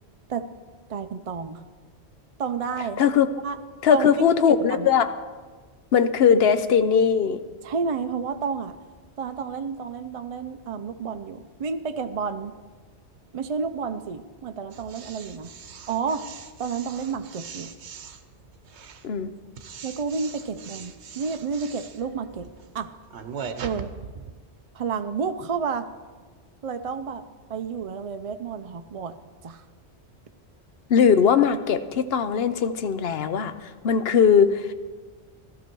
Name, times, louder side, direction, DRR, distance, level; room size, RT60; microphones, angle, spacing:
voice 1, 0.9-1.6 2.4-3.0 3.4-3.6 3.9-4.9 7.6-8.8 9.2-12.5 13.3-15.5 15.9-16.3 16.6-17.7 19.8-22.5 22.7-22.9 23.6-23.9 24.7-25.9 26.6-27.2 27.5-29.2 29.4-29.6, right 5 dB, 50° right, 9 dB, 0.4 m, -30 dB
voice 2, 3.8-5.1 5.9-7.4 19.0-19.3 30.9-34.7, left 7 dB, 65° left, 11 dB, 0.9 m, -20 dB
sound 1, 14.7-24.3, right 6 dB, 80° right, 1.1 m, -41 dB
14.5 x 12.5 x 4.5 m, 1.4 s
omnidirectional pair, 1.1 m